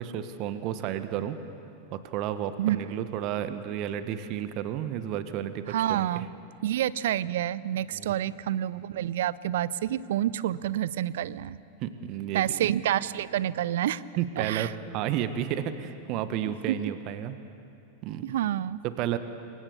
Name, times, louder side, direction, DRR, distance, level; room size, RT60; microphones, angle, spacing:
voice 1, 0.0-1.4 1.9-6.3 7.9-8.1 11.8-12.6 14.2-17.3 18.0-18.4 18.8-19.2, right 10 dB, 40° right, 11 dB, 1.4 m, -32 dB
voice 2, 5.7-6.3 6.6-11.6 12.3-14.0 14.4-14.7 16.7-16.9 18.2-18.8, right 12 dB, 55° right, 19 dB, 0.6 m, -28 dB
28.0 x 24.0 x 6.9 m, 2.6 s
figure-of-eight pair, 90°, 0 cm